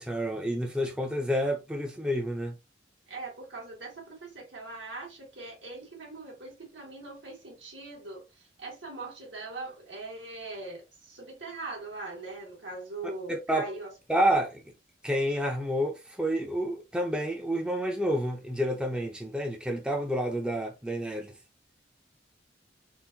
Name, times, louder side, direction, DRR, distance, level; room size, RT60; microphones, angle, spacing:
voice 1, 0.0-2.6 13.3-13.7 14.1-14.6 15.0-21.3, equal, 5° right, 0.5 m, -29 dB
voice 2, 3.1-13.9, right 2 dB, 80° right, 1.8 m, -41 dB
3.8 x 2.5 x 2.7 m
head